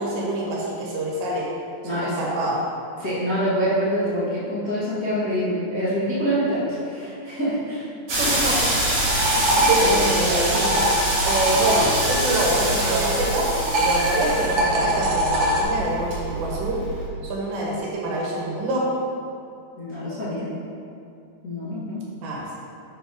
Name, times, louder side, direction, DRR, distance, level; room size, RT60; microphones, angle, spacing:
voice 1, 0.0-1.5 1.9-2.6 8.2-9.0 9.7-10.9 11.2-13.5 13.8-16.8 17.2-18.8 22.2-22.4, right 1 dB, 85° right, -4 dB, 3.7 m, -25 dB
voice 2, 1.8-2.2 3.0-7.9 19.8-20.5 21.4-22.0, equal, 85° left, -13 dB, 0.7 m, -25 dB
sound 1, 8.1-17.1, right 1 dB, 50° right, 2.7 m, -25 dB
sound 2, 8.8-13.3 13.6-15.6, right 1 dB, 65° right, 1.6 m, -24 dB
sound 3, 9.1-17.7, left 3 dB, 60° left, 3.4 m, -37 dB
8.2 x 3.8 x 5.8 m, 2.5 s
omnidirectional pair, 4.9 m